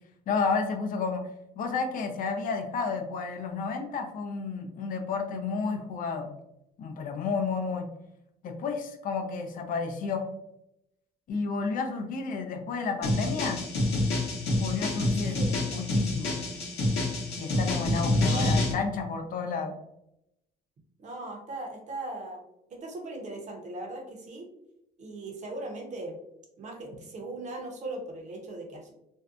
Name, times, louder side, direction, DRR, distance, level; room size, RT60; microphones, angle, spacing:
voice 1, 0.3-1.2 1.6-6.3 6.8-7.8 8.4-10.2 11.3-13.6 14.6-15.4 15.7-16.3 17.4-19.7, left 4 dB, 55° left, 4 dB, 0.5 m, -31 dB
sound 1, 13.0-18.7, left 2 dB, 80° left, 0.8 m, -27 dB
voice 2, 15.2-15.6 18.1-18.6 21.0-22.4 22.7-24.5 25.0-26.2 26.6-28.9, right 2 dB, 45° right, 1 dB, 0.7 m, -39 dB
2.6 x 2.1 x 2.4 m, 0.84 s
cardioid pair, 110°, 17 cm